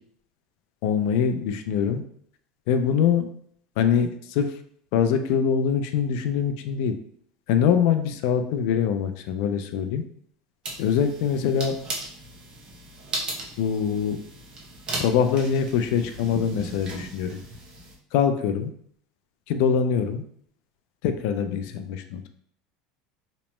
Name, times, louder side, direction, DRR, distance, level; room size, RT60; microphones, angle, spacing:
voice 1, 0.8-2.0 2.7-3.3 3.8-4.5 4.9-6.9 7.5-10.0 10.8-11.8 13.6-14.2 14.9-17.4 18.1-18.7 19.5-20.2 21.0-22.3, left 7 dB, 65° left, 8 dB, 0.4 m, -23 dB
sound 1, 10.6-18.0, right 2 dB, 30° right, 0.7 m, -37 dB
2.9 x 2.1 x 3.0 m, 0.64 s
supercardioid pair, 150°, 3 cm